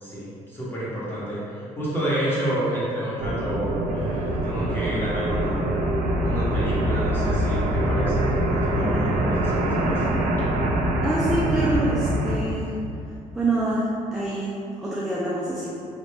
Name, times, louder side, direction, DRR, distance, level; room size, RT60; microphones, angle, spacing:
voice 1, 0.0-5.6 6.2-10.1, right 1 dB, 15° left, -9 dB, 1.1 m, -29 dB
sound 1, 3.2-12.4, right 1 dB, 65° right, 0.5 m, -24 dB
voice 2, 11.0-12.8 13.3-15.8, right 2 dB, 5° right, -7 dB, 0.4 m, -26 dB
3.2 x 2.6 x 3.3 m, 2.5 s
cardioid pair, 130°, 14 cm